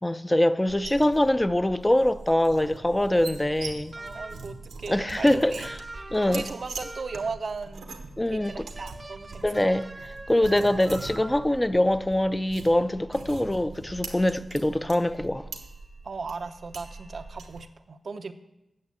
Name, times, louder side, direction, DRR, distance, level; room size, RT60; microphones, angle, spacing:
voice 1, 0.0-3.9 4.9-5.7 6.1-6.4 8.2-8.5 9.4-9.9 10.3-15.5, left 1 dB, 20° left, 0.6 m, -23 dB
sound 1, 0.7-17.7, right 3 dB, 90° right, 1.1 m, -42 dB
voice 2, 2.9-3.3 4.0-5.7 6.2-9.7 13.1-13.2 16.0-18.3, right 4 dB, 65° right, 0.7 m, -37 dB
sound 2, 3.9-4.6 5.6-7.4 8.4-11.6, right 2 dB, 30° right, 0.5 m, -44 dB
8.5 x 6.4 x 8.3 m
cardioid pair, 40°, 0 cm